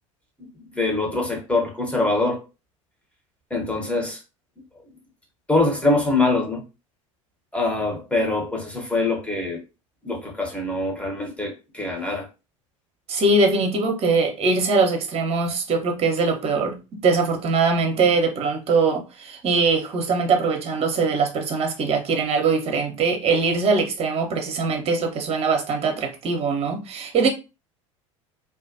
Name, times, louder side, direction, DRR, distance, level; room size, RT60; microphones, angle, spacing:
voice 1, 0.4-2.4 3.5-4.2 5.5-6.6 7.5-9.6 10.0-12.3, left 2 dB, 5° left, 1.0 m, -24 dB
voice 2, 13.1-27.3, right 4 dB, 35° right, 0.9 m, -22 dB
2.4 x 2.4 x 2.5 m
hypercardioid pair, 75°, 17 cm